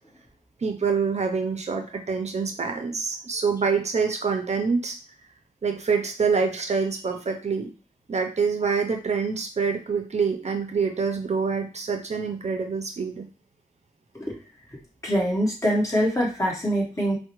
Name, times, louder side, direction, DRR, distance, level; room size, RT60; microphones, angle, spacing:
voice 1, 0.6-5.0 5.6-7.7 8.1-13.3, right 5 dB, 50° right, 4 dB, 0.5 m, -26 dB
voice 2, 15.0-17.2, equal, 20° left, -3 dB, 1.4 m, -24 dB
4.5 x 2.1 x 3.0 m, 0.36 s
wide cardioid pair, 120°, 14 cm